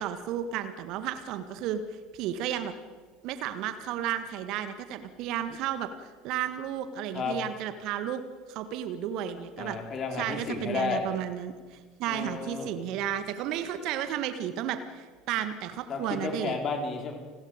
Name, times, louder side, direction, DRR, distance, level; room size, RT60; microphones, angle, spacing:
voice 1, 0.0-1.8 2.1-2.7 3.2-5.9 6.2-8.2 8.5-9.8 10.2-16.6, right 10 dB, 50° right, 10 dB, 1.6 m, -33 dB
voice 2, 9.6-11.2 12.1-12.7 15.9-17.1, left 4 dB, 35° left, 3 dB, 4.4 m, -32 dB
29.5 x 19.5 x 5.2 m, 1.4 s
figure-of-eight pair, 70°, 0 cm